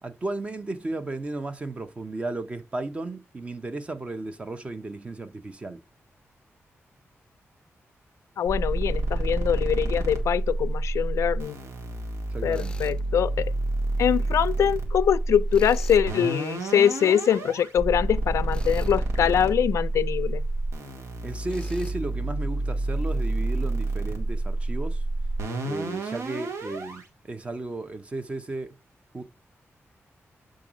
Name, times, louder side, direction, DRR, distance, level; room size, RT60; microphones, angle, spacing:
voice 1, 0.0-5.8 12.3-12.8 21.2-25.0 25.6-28.8 29.1-29.2, right 2 dB, 25° right, 0.6 m, -34 dB
voice 2, 8.4-11.6 12.4-13.5 14.0-20.4, left 9 dB, 85° left, 0.3 m, -23 dB
sound 1, 8.5-27.0, right 2 dB, 85° right, 1.7 m, -29 dB
Tools, 12.5-13.0 15.5-16.1 18.5-19.0 21.5-22.0, left 3 dB, 20° left, 0.5 m, -46 dB
7.6 x 3.7 x 5.0 m
wide cardioid pair, 175°, 5 cm